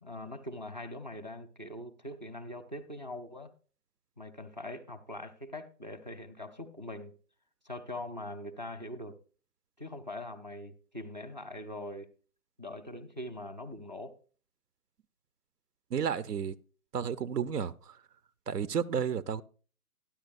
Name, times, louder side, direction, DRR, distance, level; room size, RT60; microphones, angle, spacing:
voice 1, 0.0-3.5 4.2-7.2 7.6-9.2 9.8-12.1 12.6-14.2, left 1 dB, 30° right, 0.4 m, -42 dB
voice 2, 15.9-16.6 16.9-18.0 18.5-19.4, right 7 dB, 85° right, 0.6 m, -32 dB
12.5 x 10.0 x 2.5 m
figure-of-eight pair, 150°, 46 cm